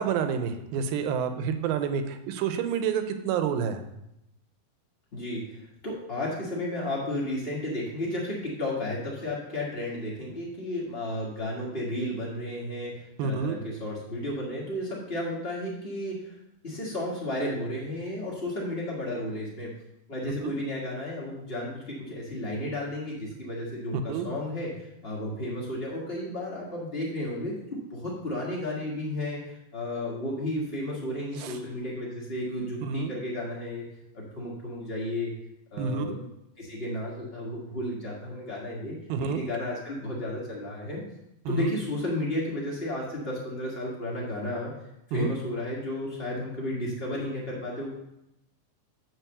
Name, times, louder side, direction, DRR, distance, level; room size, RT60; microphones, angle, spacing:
voice 1, 0.0-3.8 13.2-13.6 20.4-20.5 24.1-24.3 31.4-31.6 32.8-33.1 35.8-36.2 39.1-39.4 41.5-41.7 45.1-45.3, right 6 dB, 80° right, 8 dB, 2.4 m, -28 dB
voice 2, 5.1-16.3 16.6-19.7 20.1-33.8 34.1-35.3 35.7-36.2 36.6-39.0 39.3-41.0 41.5-44.7 45.1-47.9, left 1 dB, 70° left, -5 dB, 0.5 m, -33 dB
9.1 x 4.1 x 6.7 m, 0.84 s
omnidirectional pair, 4.3 m